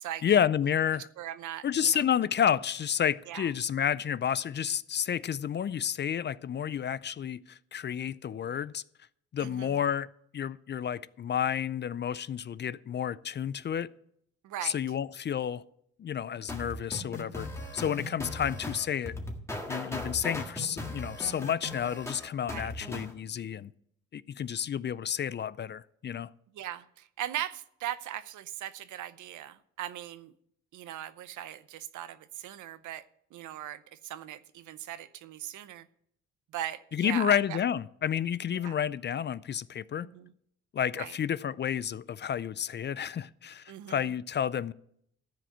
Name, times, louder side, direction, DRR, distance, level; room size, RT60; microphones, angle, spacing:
voice 1, 0.2-1.1 1.6-8.8 9.3-13.9 14.6-15.6 16.0-17.5 17.7-19.1 19.7-23.7 24.1-26.3 36.9-40.1 40.7-44.7, left 9 dB, 35° left, 0.4 m, -30 dB
voice 2, 1.2-2.0 3.3-3.5 9.4-9.8 14.4-14.8 22.5-22.7 26.5-30.3 30.7-33.0 33.3-35.9 36.5-37.6 38.6-38.8 40.0-40.3 41.0-41.1 43.7-44.1, right 12 dB, 75° right, 0.7 m, -39 dB
sound 1, 16.5-23.1, left 1 dB, 10° left, 1.8 m, -38 dB
13.5 x 4.9 x 9.1 m
cardioid pair, 90°, 30 cm